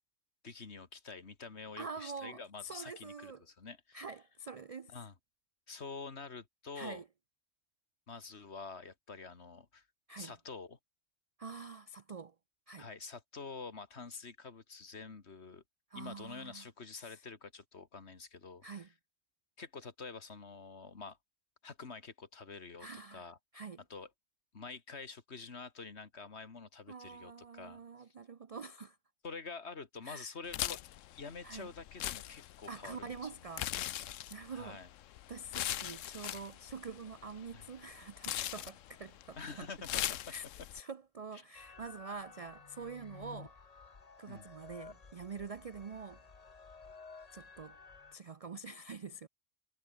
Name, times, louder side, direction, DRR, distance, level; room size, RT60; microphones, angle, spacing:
voice 1, 0.4-4.0 4.9-5.1 5.7-7.0 8.1-9.8 10.2-10.8 12.8-15.6 15.9-18.9 19.6-21.2 21.6-23.4 23.9-24.1 24.5-27.8 29.2-30.8 31.2-33.3 34.5-34.9 37.5-37.7 39.4-40.2 44.3-44.4, left 4 dB, 55° left, 2.2 m, -47 dB
voice 2, 1.8-3.4 3.9-5.0 6.7-7.0 10.1-10.3 11.4-12.3 12.7-12.9 15.9-16.7 17.0-17.2 18.6-18.9 22.8-23.3 23.5-23.8 26.9-29.0 30.0-30.3 31.4-31.7 32.7-33.7 34.3-34.8 35.3-39.7 40.3-40.4 40.7-43.5 44.2-46.2 47.3-47.8 48.1-49.3, right 4 dB, 50° right, 0.4 m, -46 dB
sound 1, 30.5-40.8, left 12 dB, 75° left, 1.0 m, -41 dB
sound 2, 41.5-48.2, left 4 dB, 30° left, 1.2 m, -54 dB
omnidirectional pair, 1.3 m